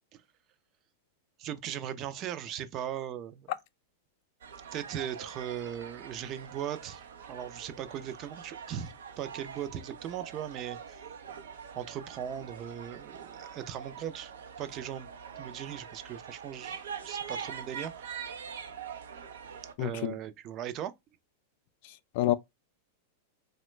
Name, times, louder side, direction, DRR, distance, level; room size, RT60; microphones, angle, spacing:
voice 1, 1.4-3.5 4.7-7.0 7.3-11.0 11.8-14.3 14.6-15.1 15.4-18.1 19.8-20.9, right 10 dB, 40° right, 0.4 m, -38 dB
sound 1, 4.4-19.7, right 7 dB, 85° right, 0.5 m, -44 dB
voice 2, 19.8-20.1 21.8-22.3, left 14 dB, 60° left, 0.3 m, -29 dB
3.0 x 2.1 x 3.0 m
hypercardioid pair, 125°, 0 cm